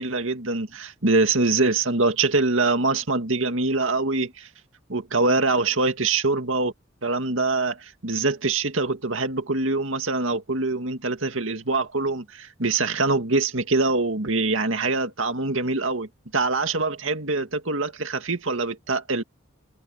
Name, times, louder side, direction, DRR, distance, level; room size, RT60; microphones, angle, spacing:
voice 1, 0.0-4.5 4.9-6.7 7.0-19.2, right 3 dB, 70° right, 2.2 m, -24 dB
head